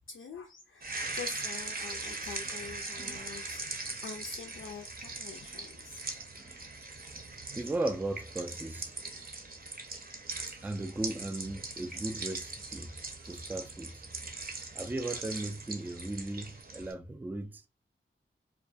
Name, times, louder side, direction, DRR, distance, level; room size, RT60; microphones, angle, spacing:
voice 1, 0.1-6.1, left 5 dB, 75° left, 0.4 m, -45 dB
sound 1, 0.8-16.9, right 3 dB, 45° right, 0.7 m, -41 dB
voice 2, 7.6-8.9 10.5-12.9 13.3-14.0 14.7-17.7, right 2 dB, 10° right, 0.3 m, -37 dB
2.3 x 2.2 x 2.4 m
cardioid pair, 50°, 21 cm